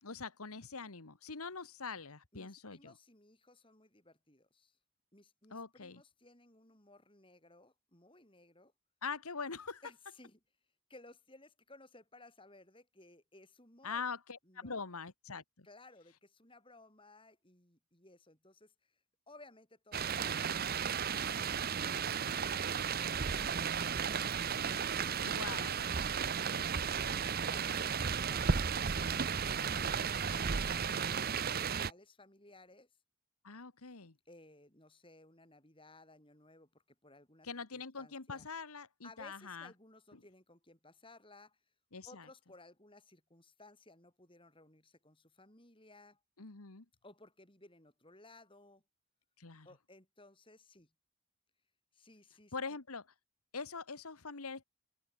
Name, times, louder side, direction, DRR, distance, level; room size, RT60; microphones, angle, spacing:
voice 1, 0.0-2.9 5.5-6.0 9.0-9.8 13.8-15.7 25.2-25.9 33.4-34.2 37.4-39.7 40.1-40.2 41.9-42.3 46.4-46.8 49.4-49.7 52.5-53.1 53.5-54.6, left 5 dB, 80° left, 1.6 m, -43 dB
voice 2, 2.3-4.8 5.1-8.7 9.8-10.4 10.9-14.0 14.4-14.8 15.6-19.0 19.3-25.9 27.1-32.9 34.3-38.5 39.0-41.6 42.0-46.2 47.0-48.8 49.7-50.9 51.9-52.8, left 2 dB, 25° left, 7.1 m, -60 dB
sound 1, 19.9-31.9, right 6 dB, 45° right, 0.7 m, -34 dB
head